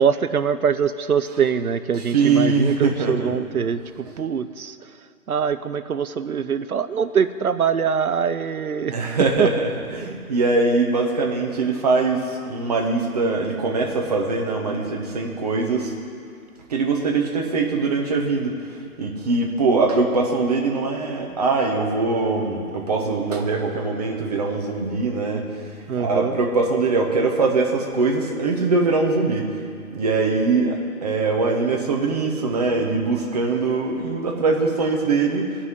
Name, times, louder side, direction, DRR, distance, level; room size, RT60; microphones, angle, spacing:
voice 1, 0.0-4.8 5.3-9.0 9.4-9.5 25.9-26.3, right 7 dB, 70° right, 11 dB, 0.8 m, -23 dB
voice 2, 2.1-3.3 8.9-15.9 16.7-18.5 19.0-25.6 26.0-29.5 29.9-35.6, right 3 dB, 25° right, 0 dB, 1.2 m, -22 dB
17.0 x 5.8 x 9.8 m, 2.4 s
hypercardioid pair, 165°, 45 cm